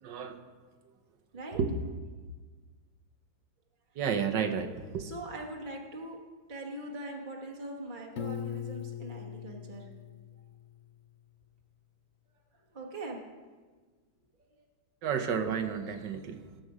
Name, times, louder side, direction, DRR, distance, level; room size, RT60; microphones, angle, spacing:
voice 1, 0.0-0.4 1.5-1.8 4.0-5.1 15.0-16.4, right 6 dB, 65° right, 7 dB, 1.5 m, -31 dB
voice 2, 5.0-6.2 6.5-9.9 12.5-13.2 14.5-14.6, right 2 dB, 30° right, 0 dB, 1.2 m, -42 dB
Piano, 8.2-11.1, left 9 dB, 70° left, 0.7 m, -40 dB
19.0 x 7.7 x 4.9 m, 1.4 s
omnidirectional pair, 2.1 m